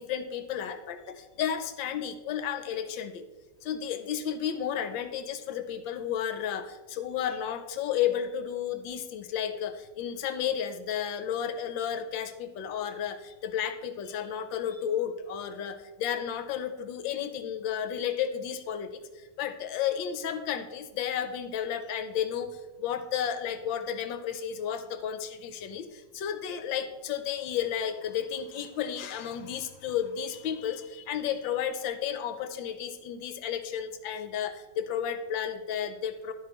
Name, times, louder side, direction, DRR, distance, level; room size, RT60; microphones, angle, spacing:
voice 1, 0.0-3.2 3.6-36.3, left 9 dB, 75° left, 9 dB, 1.3 m, -32 dB
11.5 x 7.6 x 3.0 m, 1.2 s
omnidirectional pair, 2.3 m